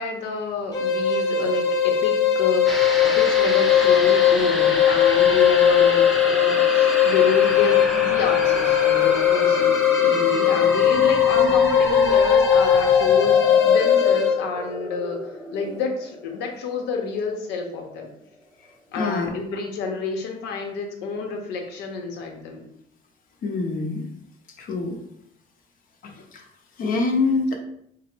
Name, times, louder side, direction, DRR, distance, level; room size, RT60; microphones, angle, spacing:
voice 1, 0.0-18.1 18.9-22.6, left 4 dB, 90° left, 3 dB, 0.8 m, -29 dB
sound 1, 0.7-14.4, left 9 dB, 20° left, 1.0 m, -19 dB
sound 2, 2.7-17.3 17.6-17.7, equal, ahead, 0.5 m, -29 dB
voice 2, 19.0-19.3 23.4-24.0 24.6-25.0 26.0-26.4 26.8-27.6, left 3 dB, 55° left, 3 dB, 0.8 m, -25 dB
3.7 x 2.1 x 4.4 m, 0.71 s
cardioid pair, 110°, 17 cm